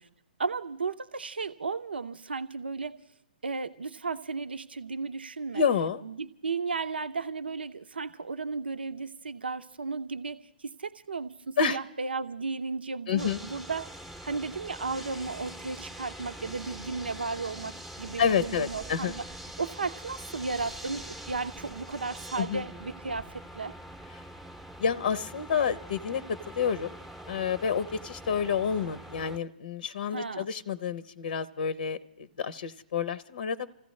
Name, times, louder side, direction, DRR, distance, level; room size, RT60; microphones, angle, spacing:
voice 1, 0.4-3.0 3.4-5.6 6.0-19.2 19.6-23.7 30.1-30.5, right 4 dB, 90° right, 11 dB, 0.7 m, -34 dB
voice 2, 5.5-6.0 11.6-11.8 13.1-13.4 18.2-19.1 22.4-22.6 24.1-24.2 24.8-27.0 27.3-33.7, left 7 dB, 70° left, 14 dB, 0.7 m, -29 dB
sound 1, 13.2-29.4, right 1 dB, 5° right, 0.7 m, -44 dB
30.0 x 15.0 x 3.2 m, 0.77 s
hypercardioid pair, 135°, 5 cm